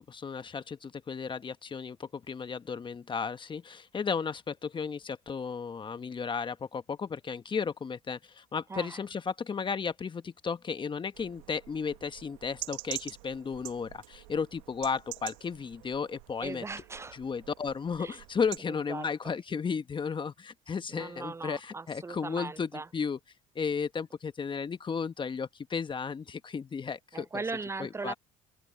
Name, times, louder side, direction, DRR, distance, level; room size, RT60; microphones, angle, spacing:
voice 1, 0.1-16.6 17.1-23.2 23.5-27.4 27.8-28.1, left 5 dB, 30° left, 1.3 m, -34 dB
sound 1, 11.1-18.6, right 22 dB, 80° right, 1.3 m, -46 dB
voice 2, 16.4-17.2 18.0-18.2 18.7-19.1 20.9-22.9 27.1-28.1, right 3 dB, 15° right, 0.4 m, -39 dB
open air
hypercardioid pair, 75°, 17 cm